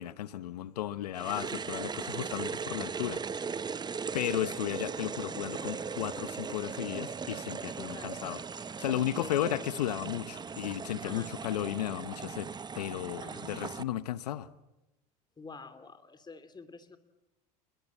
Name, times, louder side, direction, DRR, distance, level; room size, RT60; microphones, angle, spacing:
voice 1, 0.0-3.2 4.1-12.5 12.8-14.5, left 12 dB, 85° left, 1.0 m, -34 dB
sound 1, 1.1-13.8, right 5 dB, 20° right, 0.9 m, -38 dB
voice 2, 7.8-8.3 9.1-9.5 11.0-11.3 13.2-13.5 15.4-17.0, left 4 dB, 20° left, 2.8 m, -48 dB
29.0 x 22.0 x 7.4 m
hypercardioid pair, 85°, 20 cm